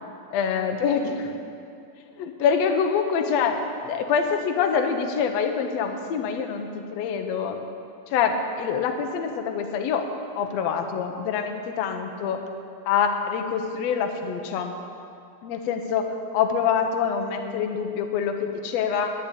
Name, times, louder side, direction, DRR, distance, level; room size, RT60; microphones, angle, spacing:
voice 1, 0.3-1.3 2.2-3.6 3.8-7.6 8.1-10.1 10.4-12.4 12.9-14.7 15.4-16.1 16.3-19.1, left 6 dB, 70° left, 4 dB, 1.6 m, -25 dB
10.5 x 10.0 x 8.8 m, 2.5 s
omnidirectional pair, 4.2 m